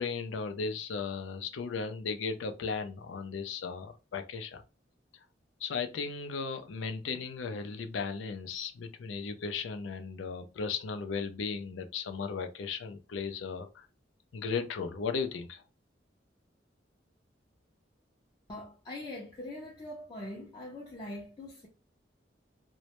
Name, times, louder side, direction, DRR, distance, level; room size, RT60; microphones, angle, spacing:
voice 1, 0.0-4.6 5.6-13.9 14.3-15.6, left 5 dB, 90° left, 0.4 m, -36 dB
voice 2, 18.5-21.7, left 1 dB, 25° left, 0.5 m, -42 dB
2.1 x 2.0 x 2.8 m
head